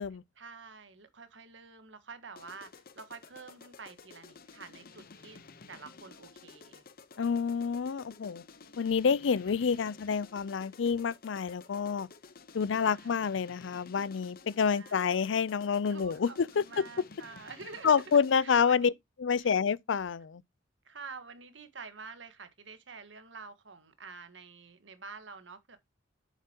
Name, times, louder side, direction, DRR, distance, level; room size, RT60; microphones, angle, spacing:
voice 1, 0.4-5.4 5.7-6.8 12.7-13.1 14.7-15.1 15.9-18.9 19.4-19.5 20.8-25.8, right 4 dB, 80° right, 1.6 m, -48 dB
sound 1, 2.4-18.5, left 4 dB, 55° left, 0.9 m, -53 dB
voice 2, 7.2-8.4 8.8-12.1 12.5-16.9 17.8-18.9 19.2-20.4, left 6 dB, 85° left, 0.5 m, -28 dB
8.1 x 7.6 x 2.9 m
head